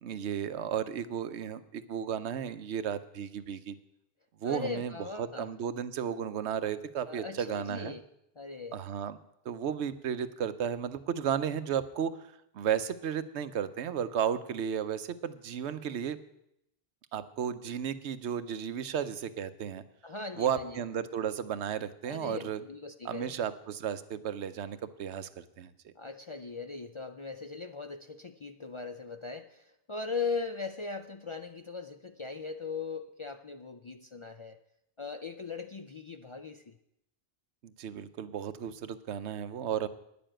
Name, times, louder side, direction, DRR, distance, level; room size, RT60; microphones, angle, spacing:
voice 1, 0.0-3.7 4.4-7.9 8.7-9.2 9.4-12.2 12.5-16.2 17.1-19.8 20.4-22.6 23.0-25.9 37.6-39.9, right 8 dB, 90° right, 13 dB, 1.0 m, -34 dB
voice 2, 4.4-5.5 7.1-8.1 8.4-8.8 20.0-20.8 22.0-23.4 26.0-34.6 35.0-36.8, left 4 dB, 45° left, 7 dB, 0.4 m, -39 dB
10.0 x 7.0 x 8.9 m, 0.80 s
omnidirectional pair, 1.1 m